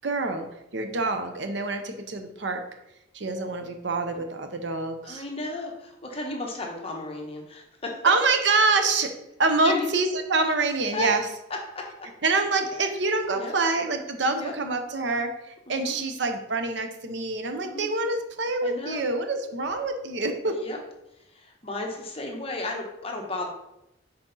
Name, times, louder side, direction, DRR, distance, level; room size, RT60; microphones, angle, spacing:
voice 1, 0.0-0.5 0.7-2.6 3.1-5.2 8.0-9.1 9.4-11.2 12.2-20.7, right 3 dB, 65° right, 6 dB, 0.7 m, -26 dB
voice 2, 5.0-8.0 9.6-9.9 10.9-11.1 11.7-12.1 13.3-13.5 14.4-14.5 15.7-16.0 17.6-17.9 18.6-19.0 20.4-20.8 21.2-23.5, left 2 dB, 30° left, 1 dB, 0.9 m, -34 dB
6.1 x 4.3 x 4.0 m, 0.86 s
head